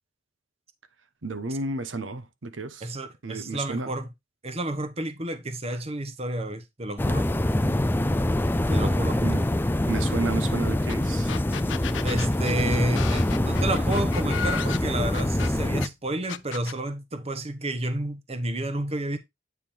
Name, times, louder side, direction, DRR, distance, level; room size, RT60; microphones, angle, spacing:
voice 1, 1.2-2.9 3.2-3.9 9.2-9.4 9.9-11.3, right 3 dB, 85° right, 0.9 m, -32 dB
voice 2, 2.8-4.1 4.4-7.3 8.7-9.2 12.0-19.2, right 1 dB, 35° right, 0.9 m, -30 dB
sound 1, 7.0-15.9, left 1 dB, 10° left, 0.4 m, -25 dB
sound 2, 10.9-11.0 11.3-15.9 16.3-16.8, left 7 dB, 75° left, 0.5 m, -34 dB
8.8 x 3.6 x 4.5 m
head